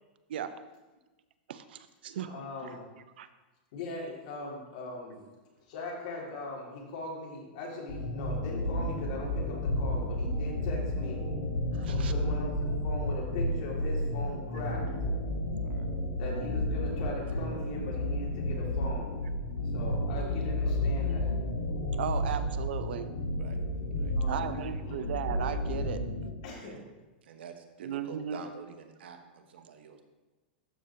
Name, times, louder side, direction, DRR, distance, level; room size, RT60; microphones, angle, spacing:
voice 1, 1.5-2.8 3.2-3.3 11.7-12.1 22.0-23.1 24.3-26.1 27.8-28.4, right 9 dB, 70° right, 12 dB, 0.5 m, -36 dB
voice 2, 2.3-2.8 3.7-5.3 5.7-11.2 11.9-14.9 16.2-19.1 19.7-21.3 24.2-24.6 24.8-24.9 26.4-26.9, left 2 dB, 50° left, -3 dB, 2.2 m, -40 dB
sound 1, 7.9-26.3, left 1 dB, 70° left, 2.6 m, -32 dB
voice 3, 27.2-30.0, right 6 dB, 90° right, 6 dB, 0.9 m, -47 dB
12.5 x 5.0 x 2.8 m, 1.1 s
supercardioid pair, 170°, 6 cm